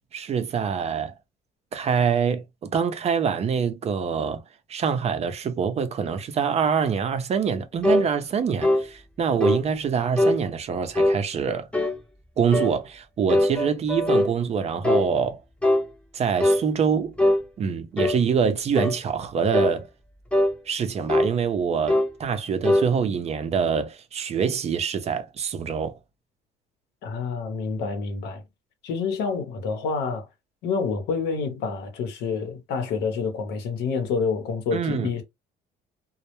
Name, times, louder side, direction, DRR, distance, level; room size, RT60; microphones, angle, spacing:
voice 1, 0.1-1.1 1.7-4.4 4.7-11.7 12.4-15.4 16.1-17.1 17.6-19.9 20.7-26.0 34.7-35.1, right 6 dB, 40° right, 0.5 m, -25 dB
sound 1, 7.8-8.1 8.6-8.9 9.4-9.6 10.2-10.4 11.0-11.2 11.7-12.0 12.5-12.8 13.3-14.3 14.8-15.1 15.6-15.9 16.4-16.6 17.2-17.4 18.0-18.2 18.8-19.0 19.5-19.8 20.3-20.6 21.1-21.3 21.9-22.1 22.6-22.9, left 1 dB, 5° left, 0.7 m, -21 dB
voice 2, 27.0-28.4 28.8-30.3 30.6-35.2, left 5 dB, 85° left, 0.8 m, -28 dB
2.1 x 2.0 x 2.9 m
cardioid pair, 110°, 17 cm